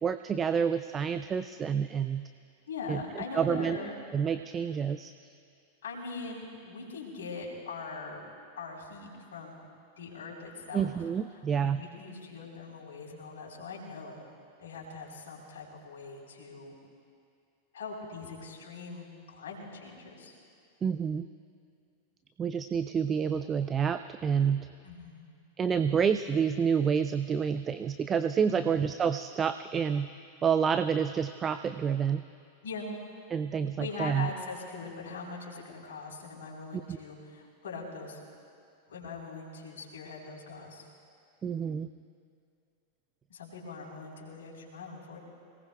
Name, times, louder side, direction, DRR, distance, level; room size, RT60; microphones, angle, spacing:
voice 1, 0.0-2.2 2.9-3.0 3.3-3.8 4.1-5.1 10.7-11.8 20.8-21.3 22.4-24.7 25.6-30.1 30.4-32.2 33.3-34.3 36.9-37.0 41.4-41.9, right 7 dB, 20° right, 11 dB, 0.4 m, -28 dB
voice 2, 2.7-3.9 5.8-8.2 8.6-9.6 10.0-10.9 11.3-14.3 14.6-16.7 17.7-20.4 24.8-25.4 28.5-28.7 32.6-32.9 33.8-38.2 38.9-40.9 43.3-45.2, left 4 dB, 60° left, -3 dB, 3.8 m, -41 dB
26.5 x 18.5 x 2.3 m, 2.4 s
figure-of-eight pair, 90°, 0 cm